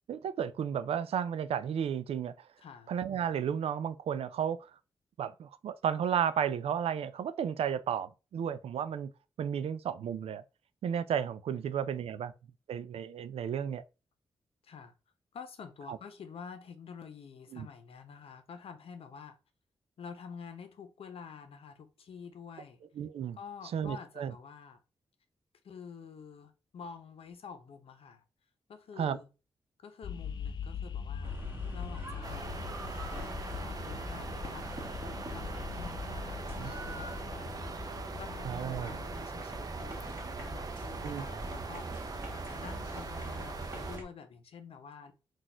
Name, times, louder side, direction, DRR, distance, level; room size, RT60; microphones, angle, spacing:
voice 1, 0.1-2.5 2.9-4.7 5.2-9.1 9.4-10.4 10.8-12.3 12.7-13.8 15.9-16.0 17.5-17.7 23.0-23.4 23.7-24.3 29.0-29.2 36.6-36.7 38.4-38.9 41.0-41.2, right 8 dB, 85° right, 0.4 m, -33 dB
voice 2, 2.6-2.9 7.7-7.8 14.6-14.9 15.3-19.4 20.0-22.8 23.3-24.8 25.6-28.2 28.7-29.3 29.8-31.4 31.7-34.9 35.3-45.1, left 6 dB, 75° left, 0.8 m, -49 dB
sound 1, 30.0-39.3, left 7 dB, 50° left, 0.3 m, -42 dB
sound 2, 31.2-44.0, right 1 dB, 25° right, 1.7 m, -43 dB
sound 3, 32.2-44.0, right 4 dB, 40° right, 0.6 m, -43 dB
4.1 x 2.4 x 4.4 m
wide cardioid pair, 100°, 10 cm